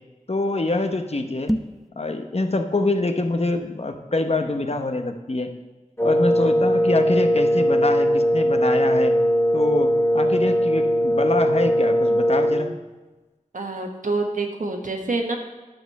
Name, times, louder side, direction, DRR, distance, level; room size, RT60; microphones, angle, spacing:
voice 1, 0.3-1.5 2.0-5.5 6.0-9.1 9.5-12.8, left 2 dB, 50° left, 6 dB, 0.8 m, -25 dB
sound 1, 1.4-1.9, equal, ahead, 0.5 m, -26 dB
Wind instrument woodwind instrument, 6.0-12.7, equal, 20° left, 0.9 m, -20 dB
voice 2, 13.5-15.4, right 3 dB, 75° right, 3 dB, 1.3 m, -26 dB
10.5 x 5.2 x 6.5 m, 1.2 s
wide cardioid pair, 60°, 14 cm